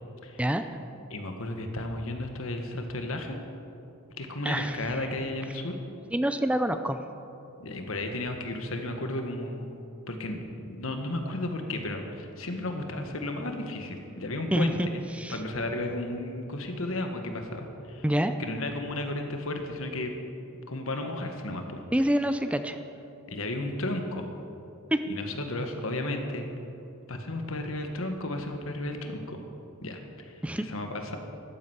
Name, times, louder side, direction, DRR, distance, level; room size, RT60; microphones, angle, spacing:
voice 1, 1.1-3.4 4.2-5.8 7.6-9.8 10.1-15.0 15.3-18.0 18.4-20.1 20.7-21.8 23.3-24.3 25.1-26.5 27.1-29.4 29.8-31.2, left 1 dB, 75° left, 4 dB, 1.6 m, -33 dB
voice 2, 4.4-4.8 6.1-7.0 14.5-14.9 15.1-15.4 18.0-18.3 21.9-22.8 24.9-25.1 30.4-30.7, right 1 dB, 5° right, 9 dB, 0.5 m, -26 dB
12.5 x 9.9 x 8.1 m, 2.8 s
head